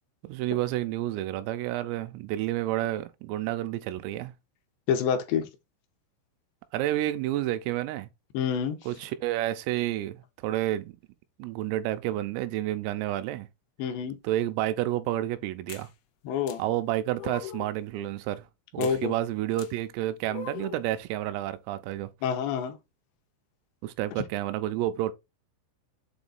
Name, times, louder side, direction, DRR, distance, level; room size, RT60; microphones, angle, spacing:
voice 1, 0.2-4.3 6.7-8.1 8.9-11.0 11.4-13.5 14.2-15.9 16.6-18.5 18.7-22.1 23.8-25.1, right 14 dB, 90° right, 3.3 m, -30 dB
voice 2, 4.9-5.5 8.3-8.8 13.8-14.2 16.3-16.6 18.8-19.1 22.2-22.8, left 7 dB, 75° left, 2.7 m, -27 dB
sound 1, 15.7-15.9 16.5-16.6 17.2-17.7 18.8-19.0 19.6-19.7 20.3-20.9, left 10 dB, 90° left, 2.5 m, -40 dB
7.8 x 3.0 x 4.1 m
omnidirectional pair, 5.9 m